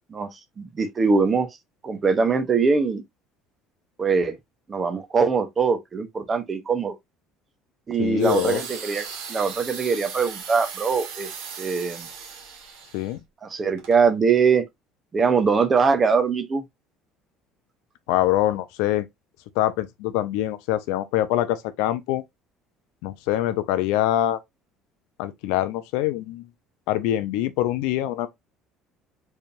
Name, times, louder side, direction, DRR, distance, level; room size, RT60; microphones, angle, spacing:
voice 1, 0.1-1.5 1.8-3.0 4.0-4.4 4.7-7.0 7.9-11.3 11.6-12.1 13.4-14.6 15.1-16.6, right 5 dB, 25° right, 0.8 m, -22 dB
voice 2, 8.0-8.6 12.9-13.2 18.1-19.1 19.6-22.2 23.0-24.4 25.2-26.5 26.9-28.3, left 13 dB, 90° left, 0.6 m, -24 dB
sound 1, 8.2-13.1 13.8-14.0, right 6 dB, 80° right, 1.7 m, -37 dB
4.7 x 3.4 x 2.6 m
cardioid pair, 150°, 0 cm